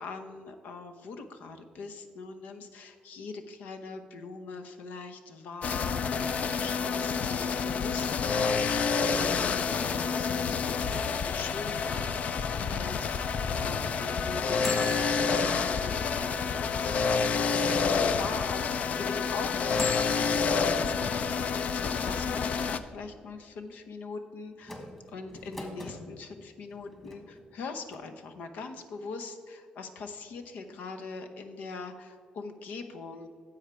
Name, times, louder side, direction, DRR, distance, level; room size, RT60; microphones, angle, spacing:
voice 1, 0.0-9.6 9.9-24.8 25.1-33.3, left 4 dB, 90° left, 7 dB, 0.8 m, -42 dB
sound 1, 5.6-22.8, left 5 dB, 60° left, 0.5 m, -28 dB
sound 2, 14.6-17.7 18.3-18.4 19.7-21.5 24.6-26.0 26.7-27.6 27.9-28.0, left 2 dB, 15° left, 1.7 m, -41 dB
9.9 x 7.2 x 4.5 m, 2.1 s
cardioid pair, 105°, 3 cm